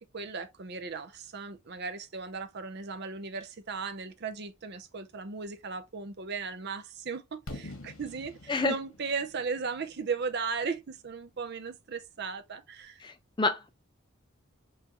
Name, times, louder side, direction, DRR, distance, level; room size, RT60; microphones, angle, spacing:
voice 1, 0.1-13.0, right 5 dB, 50° right, 0.6 m, -36 dB
Fireworks, 7.5-11.3, left 2 dB, 85° left, 1.3 m, -47 dB
voice 2, 13.0-13.7, left 3 dB, 20° left, 0.5 m, -28 dB
5.6 x 2.7 x 2.9 m
head